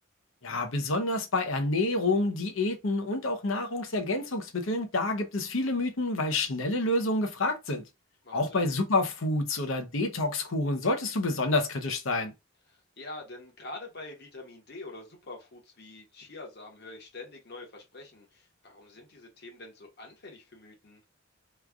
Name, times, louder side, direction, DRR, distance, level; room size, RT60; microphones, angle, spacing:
voice 1, 0.4-7.8 8.3-12.3, left 2 dB, 75° left, 0.8 m, -28 dB
voice 2, 8.2-8.7 12.7-21.0, left 2 dB, 55° left, 1.2 m, -45 dB
3.1 x 2.4 x 3.5 m
head